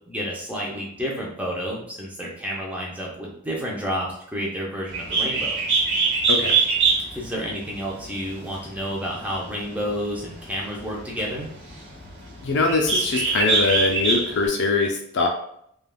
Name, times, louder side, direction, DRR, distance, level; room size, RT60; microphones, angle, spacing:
voice 1, 0.1-5.6 7.1-11.5, equal, 5° right, -4 dB, 0.5 m, -30 dB
Bird, 4.9-14.5, right 4 dB, 50° right, 1.1 m, -25 dB
voice 2, 6.3-6.6 12.4-15.3, left 3 dB, 55° left, 1 dB, 0.5 m, -22 dB
3.4 x 2.3 x 2.3 m, 0.70 s
head